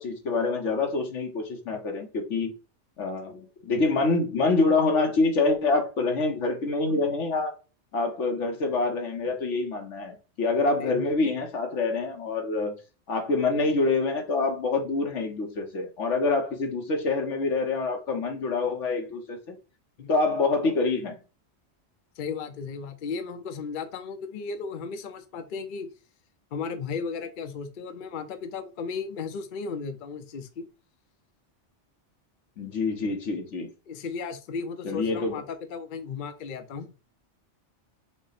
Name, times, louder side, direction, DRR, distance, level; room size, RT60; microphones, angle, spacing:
voice 1, 0.0-2.5 3.0-7.5 7.9-12.8 13.1-19.6 20.1-21.2 32.6-33.7 34.8-35.4, left 3 dB, 85° left, 1.4 m, -26 dB
voice 2, 22.2-25.9 26.5-30.6 33.9-36.9, left 5 dB, 50° left, 0.7 m, -35 dB
6.0 x 2.2 x 4.1 m
omnidirectional pair, 1.2 m